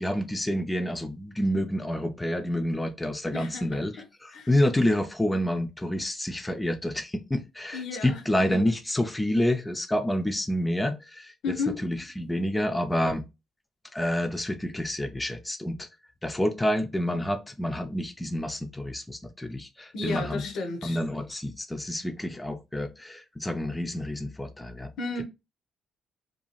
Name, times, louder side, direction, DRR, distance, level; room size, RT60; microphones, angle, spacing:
voice 1, 0.0-11.6 11.8-13.2 13.9-15.9 16.2-20.4 20.8-24.9, left 1 dB, 10° left, 0.4 m, -28 dB
voice 2, 3.3-4.0 4.3-4.5 7.7-8.7 11.4-11.8 19.9-21.0 25.0-25.2, left 3 dB, 70° left, 0.6 m, -33 dB
2.6 x 2.3 x 2.9 m
cardioid pair, 90°, 0 cm